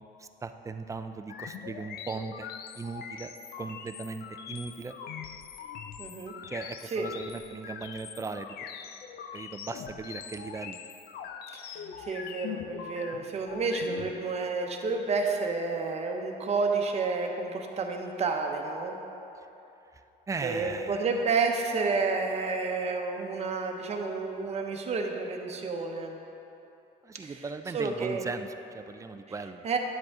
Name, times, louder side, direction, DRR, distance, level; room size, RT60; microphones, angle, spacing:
voice 1, 0.2-2.5 2.8-5.0 6.5-8.7 9.3-10.8 19.9-20.0 20.3-21.1 27.0-29.7, right 4 dB, 20° right, 9 dB, 0.4 m, -38 dB
sound 1, 1.3-14.1, left 7 dB, 65° left, 0.5 m, -42 dB
voice 2, 6.0-6.3 6.9-7.1 11.5-19.0 20.4-26.2 27.2-27.3 27.7-28.2 29.6-29.8, right 4 dB, 40° right, 2 dB, 0.9 m, -30 dB
10.0 x 7.7 x 3.6 m, 2.9 s
cardioid pair, 110°, 17 cm